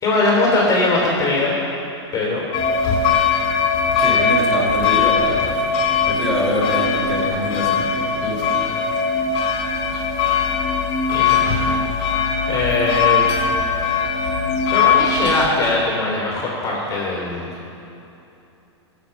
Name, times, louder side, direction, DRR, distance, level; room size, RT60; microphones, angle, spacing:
voice 1, 0.0-1.6 2.1-2.4 11.1-11.4 12.5-13.2 14.7-17.5, left 2 dB, 20° left, -3 dB, 3.2 m, -20 dB
sound 1, 2.5-15.5, left 5 dB, 45° left, 2.3 m, -20 dB
voice 2, 4.0-5.5 6.1-8.4, left 1 dB, ahead, -6 dB, 3.4 m, -24 dB
17.5 x 7.0 x 5.9 m, 2.9 s
hypercardioid pair, 105°, 15 cm